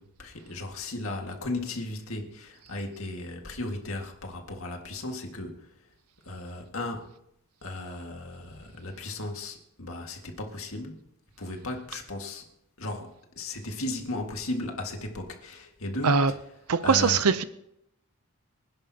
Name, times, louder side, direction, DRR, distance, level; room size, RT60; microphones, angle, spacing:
voice 1, 0.0-5.7 6.3-7.1 7.6-11.0 11.4-12.4 12.8-16.4 16.8-17.2, left 2 dB, 70° left, 1.9 m, -36 dB
voice 2, 16.7-17.4, right 5 dB, 85° right, 0.6 m, -21 dB
24.5 x 10.5 x 2.9 m
head